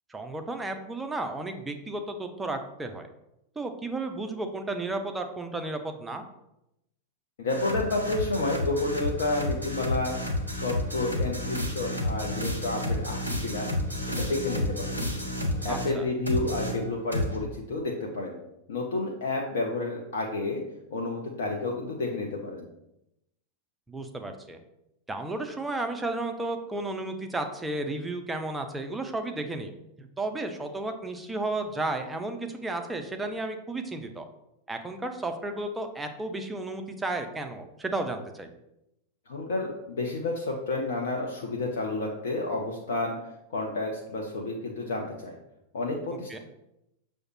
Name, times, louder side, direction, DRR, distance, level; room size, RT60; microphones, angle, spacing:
voice 1, 0.1-3.1 3.6-6.2 15.7-16.1 23.9-24.6 25.1-29.7 30.0-34.3 34.7-38.5 46.3-46.4, right 2 dB, 10° right, 6 dB, 0.4 m, -33 dB
voice 2, 7.4-10.2 10.6-13.7 14.1-15.0 15.6-18.4 18.7-20.6 20.9-22.7 39.3-43.2 43.5-45.4 45.7-46.4, left 2 dB, 60° left, 1 dB, 0.5 m, -30 dB
sound 1, 7.5-16.0 16.3-17.4, left 1 dB, 90° left, 0.9 m, -31 dB
6.2 x 2.1 x 3.1 m, 0.85 s
figure-of-eight pair, 90°, 0 cm